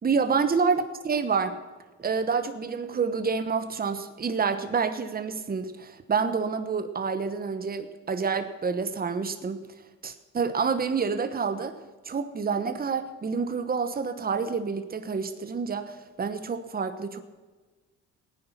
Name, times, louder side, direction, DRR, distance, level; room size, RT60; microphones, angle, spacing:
voice 1, 0.0-1.6 2.0-9.7 10.0-11.8 12.0-17.2, right 5 dB, 30° right, 9 dB, 1.1 m, -28 dB
17.0 x 9.8 x 5.8 m, 1.3 s
cardioid pair, 90°, 30 cm